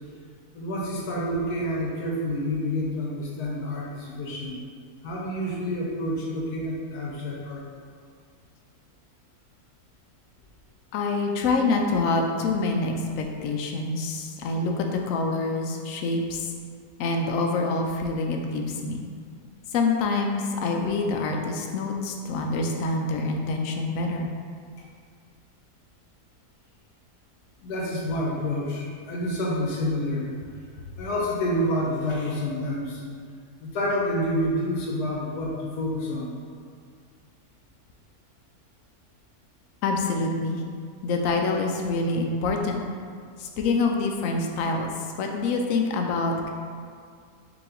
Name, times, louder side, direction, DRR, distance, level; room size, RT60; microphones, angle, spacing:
voice 1, 0.5-4.6 5.0-7.6 27.6-30.3 31.0-33.0 33.6-36.3, left 1 dB, 85° left, -3 dB, 1.4 m, -28 dB
voice 2, 10.9-16.5 17.0-19.0 19.7-24.3 39.8-40.6 41.0-42.8 43.4-44.9 45.2-46.5, left 3 dB, 70° left, 2 dB, 0.9 m, -26 dB
4.8 x 2.9 x 3.7 m, 2.2 s
omnidirectional pair, 1.6 m